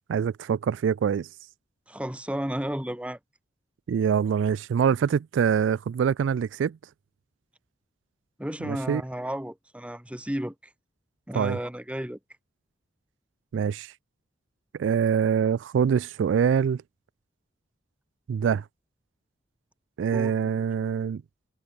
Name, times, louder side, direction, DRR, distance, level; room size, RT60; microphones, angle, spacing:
voice 1, 0.1-1.3 3.9-6.8 8.6-9.0 11.3-11.6 13.5-13.9 14.8-16.8 18.3-18.6 20.0-21.2, right 7 dB, 85° right, 0.3 m, -24 dB
voice 2, 1.9-3.2 8.4-10.5 11.3-12.2 20.1-20.5, equal, 5° right, 1.2 m, -33 dB
head